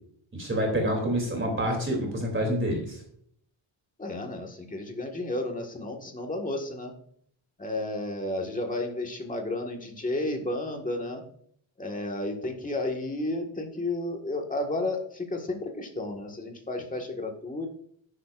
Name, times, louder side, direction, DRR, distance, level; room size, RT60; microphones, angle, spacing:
voice 1, 0.3-3.0, equal, 25° right, 1 dB, 2.9 m, -27 dB
voice 2, 4.0-6.9 7.6-11.2 11.8-17.7, left 2 dB, 15° left, 2 dB, 1.7 m, -32 dB
11.5 x 10.5 x 2.5 m, 0.65 s
wide cardioid pair, 150°, 49 cm